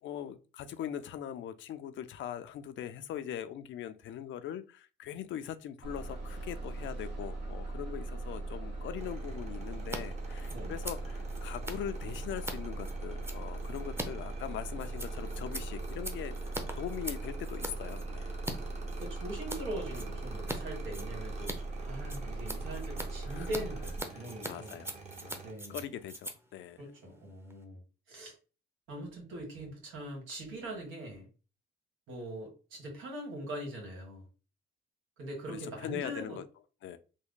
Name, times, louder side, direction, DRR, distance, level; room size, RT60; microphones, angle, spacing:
voice 1, 0.0-16.4 16.8-18.3 23.3-23.5 24.1-25.0 25.2-26.8 35.5-36.4 36.8-37.0, left 10 dB, 70° left, 0.5 m, -41 dB
Bus, 5.8-24.0, right 2 dB, 60° right, 1.4 m, -39 dB
sound 1, 9.0-25.5, right 4 dB, 35° right, 0.9 m, -50 dB
Scissors, 9.8-10.0 10.3-18.6 18.9-19.6 19.9-20.6 20.8-27.6, right 1 dB, 10° right, 0.7 m, -42 dB
voice 2, 19.0-21.5 21.9-24.7 25.4-25.8 26.8-27.8 28.1-28.3 28.9-31.3 32.1-34.2 35.2-36.4, right 1 dB, 90° right, 1.6 m, -41 dB
3.6 x 2.1 x 3.7 m
cardioid pair, 90°, 20 cm